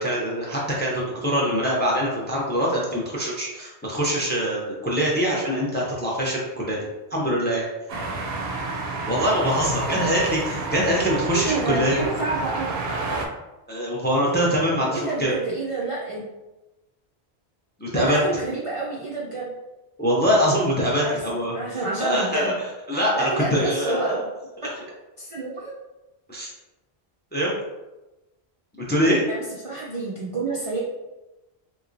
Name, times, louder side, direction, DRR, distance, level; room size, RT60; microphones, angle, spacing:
voice 1, 0.0-6.8 7.1-7.7 9.0-12.0 13.7-15.3 17.8-18.2 20.0-21.5 22.0-22.5 22.9-24.2 24.6-24.7 26.3-26.5 27.3-27.5 28.9-29.2, equal, 15° left, -3 dB, 0.4 m, -23 dB
sound 1, 7.9-13.3, right 3 dB, 65° right, 0.8 m, -30 dB
voice 2, 9.8-10.2 11.3-12.8 14.9-16.3 17.9-19.5 21.0-21.2 21.5-22.5 23.1-24.2 25.2-25.7 29.3-30.8, right 3 dB, 45° right, -5 dB, 0.4 m, -28 dB
3.5 x 3.0 x 2.5 m, 1.0 s
omnidirectional pair, 1.1 m